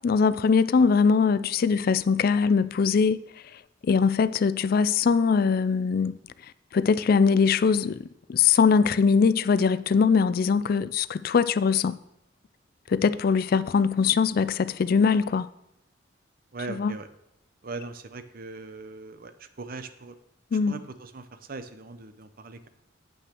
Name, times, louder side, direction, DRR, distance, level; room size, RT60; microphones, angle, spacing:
voice 1, 0.0-3.2 3.5-6.2 6.7-12.0 12.9-15.5 16.7-16.9 20.5-20.8, left 5 dB, 50° left, 0.3 m, -22 dB
voice 2, 16.5-17.1 17.6-20.2 20.7-22.7, right 3 dB, 50° right, 0.7 m, -40 dB
7.9 x 5.9 x 6.0 m
head